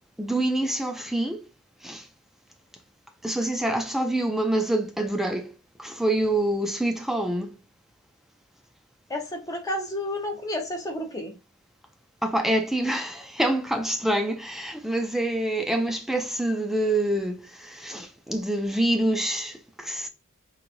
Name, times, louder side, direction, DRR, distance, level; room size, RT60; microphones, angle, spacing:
voice 1, 0.2-1.5 1.8-2.1 3.2-5.5 5.8-7.6 12.2-20.1, right 1 dB, ahead, 0.4 m, -26 dB
voice 2, 9.1-11.3, left 1 dB, 15° left, 0.8 m, -31 dB
3.9 x 3.1 x 2.5 m
head